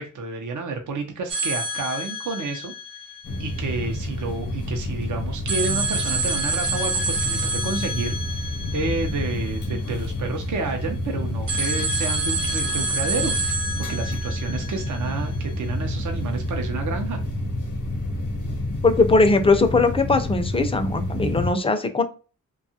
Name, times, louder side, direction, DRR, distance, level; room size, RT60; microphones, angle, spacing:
voice 1, 0.0-2.7 3.4-17.2, right 4 dB, 65° right, 4 dB, 0.6 m, -30 dB
sound 1, 1.3-4.2 5.5-10.4 11.5-15.7, right 2 dB, 85° right, 1.0 m, -29 dB
sound 2, 3.2-21.5, left 1 dB, 70° left, 0.8 m, -29 dB
voice 2, 18.8-22.0, left 3 dB, 20° left, 8 dB, 0.4 m, -19 dB
2.7 x 2.3 x 2.7 m, 0.34 s
cardioid pair, 70°, 32 cm